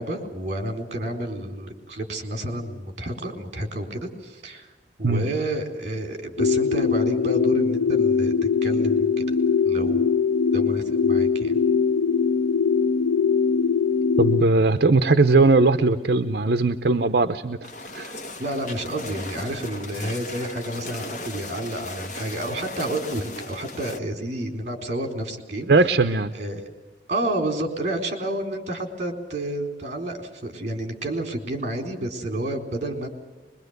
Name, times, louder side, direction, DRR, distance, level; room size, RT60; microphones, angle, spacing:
voice 1, 0.0-4.7 5.0-9.2 9.7-10.1 10.5-11.6 18.4-25.9 26.3-26.6 27.1-33.1, right 1 dB, 40° right, 4 dB, 4.0 m, -30 dB
sound 1, 6.4-14.4, left 5 dB, 85° left, 0.7 m, -21 dB
voice 2, 14.2-17.6 17.9-18.1 25.7-26.3, right 3 dB, 55° right, 9 dB, 0.7 m, -19 dB
sound 2, 17.6-24.0, left 2 dB, 40° left, 1.4 m, -37 dB
24.0 x 22.5 x 8.1 m, 1.2 s
head